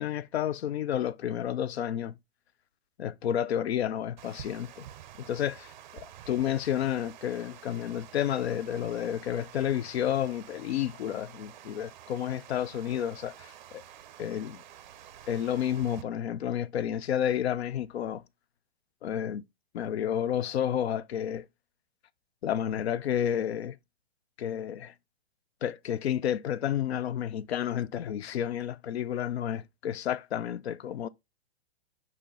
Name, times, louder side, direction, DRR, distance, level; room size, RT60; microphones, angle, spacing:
voice 1, 0.0-2.1 3.0-4.8 5.3-13.8 14.2-14.6 15.3-18.2 19.0-19.4 19.7-21.5 22.4-23.8 24.4-24.9 25.6-31.1, left 10 dB, 75° left, 0.5 m, -31 dB
Water, 4.2-16.0, right 11 dB, 45° right, 0.5 m, -49 dB
4.8 x 2.9 x 3.5 m
hypercardioid pair, 140°, 32 cm